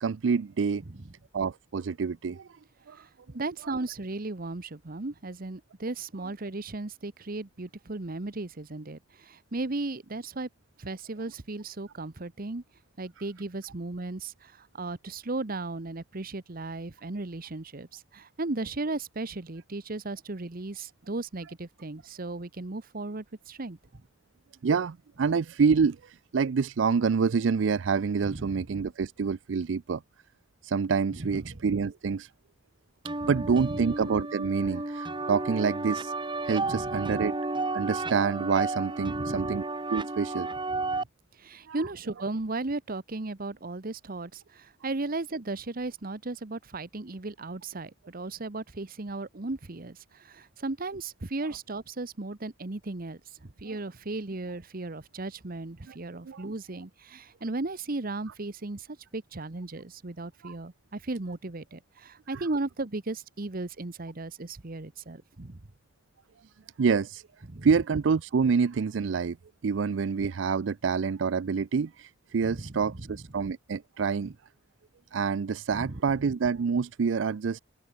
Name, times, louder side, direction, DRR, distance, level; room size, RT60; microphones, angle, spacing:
voice 1, 0.0-0.8 1.3-2.5 2.9-3.0 24.6-30.0 30.6-32.3 33.3-36.1 36.4-37.3 37.7-39.6 39.9-40.5 41.7-41.8 55.9-56.0 56.3-56.5 60.4-60.5 62.3-62.4 66.8-67.2 67.6-69.4 69.6-74.3 75.1-77.6, right 5 dB, 75° right, 0.4 m, -27 dB
voice 2, 2.9-10.5 10.8-12.6 13.0-24.0 28.2-28.6 31.1-31.6 33.2-33.8 36.6-37.1 39.1-39.5 40.7-41.1 41.4-58.9 59.1-65.6 67.4-67.7 72.4-73.2 75.7-76.0, right 2 dB, 50° right, 1.1 m, -36 dB
sound 1, 33.0-41.0, right 2 dB, 25° right, 2.2 m, -32 dB
head